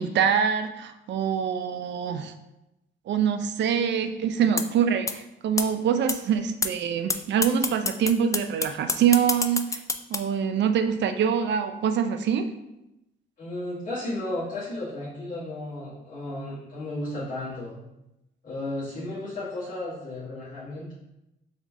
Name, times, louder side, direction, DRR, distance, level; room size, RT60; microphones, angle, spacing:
voice 1, 0.0-2.3 3.1-9.8 10.1-12.5, right 7 dB, 65° right, 8 dB, 0.5 m, -25 dB
sound 1, 4.6-4.7 5.1-5.2 5.6-5.7 6.1-6.2 6.6-6.7 7.1-7.2 7.4-10.2, left 4 dB, 15° left, 0.3 m, -25 dB
voice 2, 13.4-17.8 18.4-20.9, left 1 dB, 45° left, -11 dB, 1.6 m, -34 dB
3.7 x 3.6 x 3.6 m, 0.90 s
cardioid pair, 90°, 20 cm